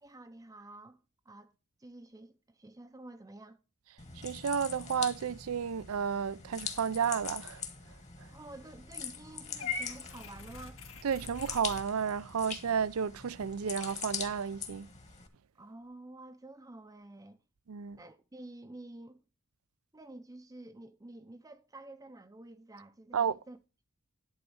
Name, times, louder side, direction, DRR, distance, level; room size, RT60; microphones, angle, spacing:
voice 1, 0.0-1.5 1.8-3.6 8.3-10.8 15.6-17.4 18.0-19.2 19.9-23.6, right 2 dB, 15° right, 0.6 m, -50 dB
sound 1, 4.0-15.3, left 6 dB, 35° left, 1.4 m, -43 dB
voice 2, 4.2-7.6 11.0-14.9 17.7-18.0 23.1-23.4, right 7 dB, 70° right, 0.5 m, -32 dB
Purr / Meow, 9.6-11.8, left 5 dB, 65° left, 2.0 m, -40 dB
11.0 x 4.0 x 7.0 m
head